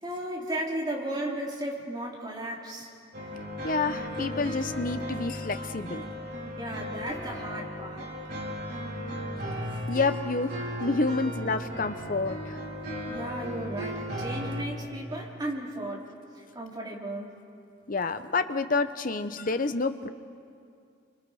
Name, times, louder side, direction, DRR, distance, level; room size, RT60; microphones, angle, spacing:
voice 1, 0.0-2.9 6.6-8.1 13.1-16.1 16.3-17.3, right 1 dB, 20° right, -3 dB, 3.1 m, -35 dB
sound 1, 3.1-14.7, equal, 55° right, 5.0 m, -36 dB
voice 2, 3.6-6.0 9.9-12.6 17.9-20.1, left 3 dB, 45° left, 10 dB, 0.8 m, -29 dB
29.0 x 25.0 x 4.9 m, 2.4 s
head